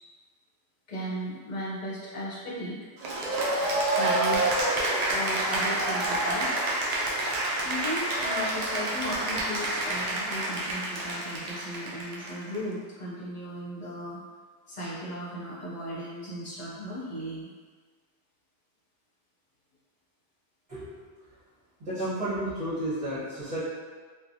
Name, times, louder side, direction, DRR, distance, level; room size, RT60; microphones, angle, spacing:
voice 1, 0.9-2.8 3.9-6.6 7.6-14.2 14.7-17.5, equal, 45° left, -7 dB, 0.8 m, -36 dB
Cheering / Applause, 3.0-12.6, right 1 dB, 65° right, 0.4 m, -28 dB
voice 2, 20.7-21.0 21.8-23.6, right 1 dB, 40° right, -14 dB, 1.1 m, -32 dB
3.0 x 2.2 x 2.6 m, 1.5 s
omnidirectional pair, 1.2 m